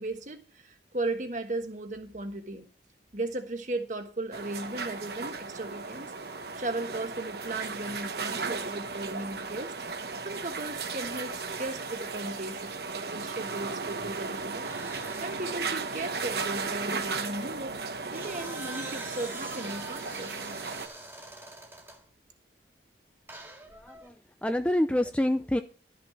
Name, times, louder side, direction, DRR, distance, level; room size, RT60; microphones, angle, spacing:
voice 1, 0.0-2.7 3.1-6.1 6.5-9.7 10.2-14.7 15.2-20.6, right 2 dB, 45° right, 6 dB, 1.3 m, -36 dB
sound 1, 4.3-20.9, right 4 dB, 60° right, 1.0 m, -36 dB
sound 2, 14.6-15.7 17.8-22.0 23.3-24.1, right 2 dB, 15° right, 1.9 m, -44 dB
voice 2, 23.8-24.1 24.4-25.6, left 1 dB, 5° left, 9 dB, 0.4 m, -27 dB
12.5 x 6.1 x 5.8 m, 0.40 s
head